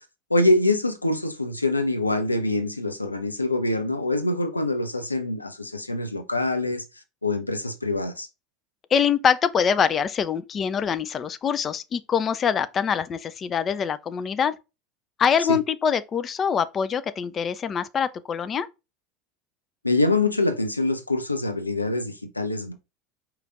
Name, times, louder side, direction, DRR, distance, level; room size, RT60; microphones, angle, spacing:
voice 1, 0.3-6.8 7.2-8.3 15.5-15.6 19.8-22.7, left 2 dB, 85° left, 0.6 m, -24 dB
voice 2, 8.9-14.6 15.2-18.7, left 7 dB, 30° left, 0.4 m, -24 dB
4.9 x 3.1 x 3.6 m
figure-of-eight pair, 75°, 0 cm